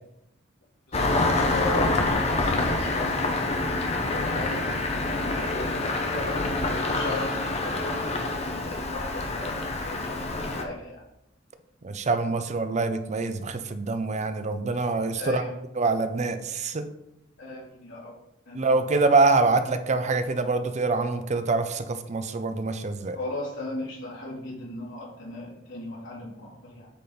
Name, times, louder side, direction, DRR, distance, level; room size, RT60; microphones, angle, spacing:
voice 1, 0.9-4.7 5.2-11.0 15.2-15.5 17.4-18.1 18.4-18.7 23.1-26.9, left 2 dB, 70° left, -5 dB, 2.9 m, -37 dB
Engine starting, 0.9-10.6, left 2 dB, 35° left, 0.8 m, -26 dB
voice 2, 11.8-15.4 15.8-16.9 18.5-23.2, right 3 dB, 35° right, 9 dB, 0.5 m, -25 dB
8.3 x 4.1 x 4.2 m, 0.83 s
head